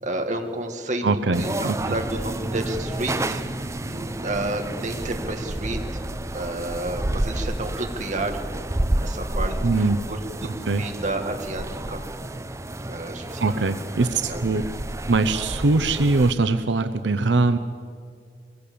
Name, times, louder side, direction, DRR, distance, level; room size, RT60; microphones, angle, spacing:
voice 1, 0.0-1.0 1.4-3.4 3.8-5.8 6.3-8.4 9.0-12.0 12.9-13.5 14.0-14.4, right 2 dB, 45° right, 4 dB, 1.9 m, -31 dB
voice 2, 1.0-1.9 9.6-10.0 10.7-10.8 13.4-14.6 15.1-17.6, right 3 dB, 85° right, 10 dB, 0.7 m, -22 dB
sound 1, 1.3-16.3, right 1 dB, 15° right, 0.6 m, -30 dB
22.0 x 16.5 x 8.6 m, 2.2 s
head